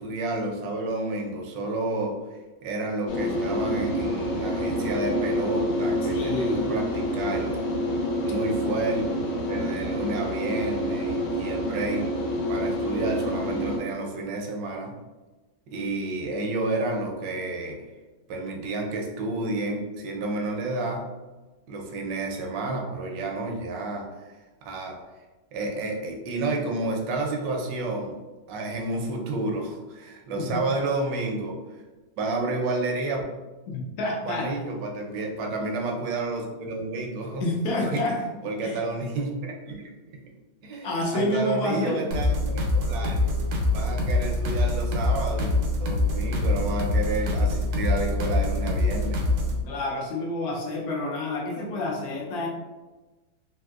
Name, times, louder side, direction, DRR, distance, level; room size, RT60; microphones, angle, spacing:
voice 1, 0.0-7.6 8.3-9.1 9.5-12.1 12.5-15.0 15.7-17.8 18.3-21.1 21.7-25.0 25.5-28.2 28.5-31.6 32.2-33.2 34.2-37.5 37.8-38.1 38.4-40.2 40.6-43.2 43.7-49.2, right 2 dB, 70° right, 1 dB, 1.2 m, -30 dB
sound 1, 3.1-13.8, equal, 70° left, 1.2 m, -28 dB
voice 2, 6.1-6.8 30.3-30.6 33.7-34.5 37.4-38.2 38.6-38.8 40.8-42.0 49.6-52.5, left 2 dB, 85° left, -2 dB, 0.8 m, -28 dB
sound 2, 42.1-49.6, left 2 dB, 90° right, 1.5 m, -25 dB
3.5 x 2.7 x 2.2 m, 1.2 s
omnidirectional pair, 2.2 m